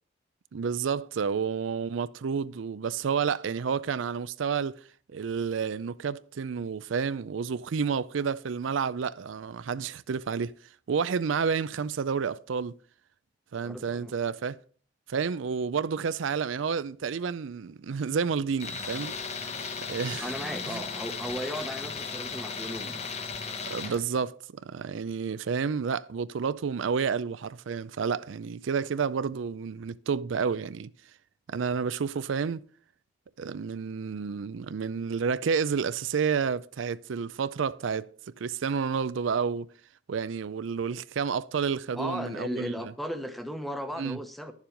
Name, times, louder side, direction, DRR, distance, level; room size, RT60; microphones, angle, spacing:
voice 1, 0.5-4.8 5.1-10.5 10.9-12.7 13.5-14.6 15.1-19.3 19.8-20.3 20.7-20.8 23.7-30.9 31.5-32.6 33.4-38.1 38.4-39.7 40.1-42.7 44.0-44.2, right 6 dB, 85° right, 0.4 m, -30 dB
voice 2, 13.6-14.1 20.2-23.1 23.8-24.3 41.9-44.5, equal, ahead, 0.9 m, -36 dB
Tools, 18.6-24.0, left 5 dB, 35° left, 1.1 m, -36 dB
10.5 x 7.3 x 5.1 m
head